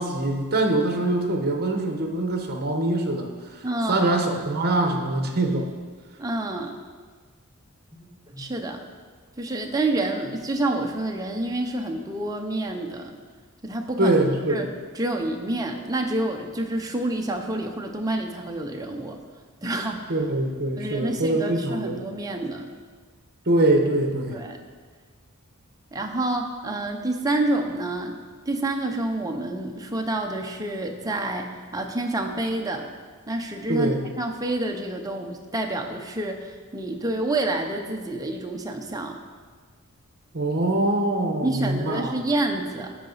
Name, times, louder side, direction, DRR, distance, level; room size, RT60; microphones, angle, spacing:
voice 1, 0.0-5.7 14.0-14.7 20.1-22.0 23.5-24.4 33.7-34.1 40.3-42.2, right 2 dB, 45° right, 3 dB, 1.1 m, -24 dB
voice 2, 3.6-4.1 6.2-6.8 8.0-8.8 9.4-13.2 13.6-14.2 14.5-14.7 14.9-19.2 19.6-20.1 20.8-22.7 24.3-24.6 25.9-32.9 33.3-39.2 41.4-43.0, right 2 dB, 15° right, 2 dB, 0.7 m, -28 dB
13.0 x 5.1 x 4.0 m, 1.5 s
head